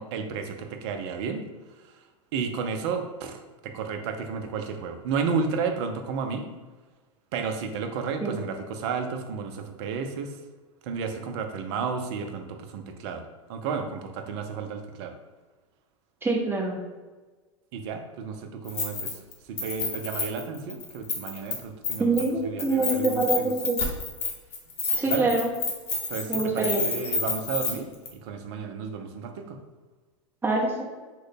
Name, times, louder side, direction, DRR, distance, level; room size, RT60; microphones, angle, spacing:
voice 1, 0.0-1.5 1.8-2.0 2.3-6.5 7.3-10.4 10.8-13.2 13.5-15.2 17.7-22.1 22.4-23.5 25.1-25.3 26.1-27.9 28.2-29.6, right 5 dB, 55° right, 6 dB, 0.5 m, -32 dB
voice 2, 16.2-16.8 22.0-23.8 24.9-25.5 26.3-26.8 30.4-30.8, right 3 dB, 15° right, -2 dB, 0.8 m, -25 dB
Keys jangling, 18.7-19.3 19.6-21.5 21.8-22.3 22.6-27.7 28.1-28.2, left 4 dB, 35° left, 0.9 m, -29 dB
3.1 x 2.2 x 3.9 m, 1.3 s
hypercardioid pair, 100°, 17 cm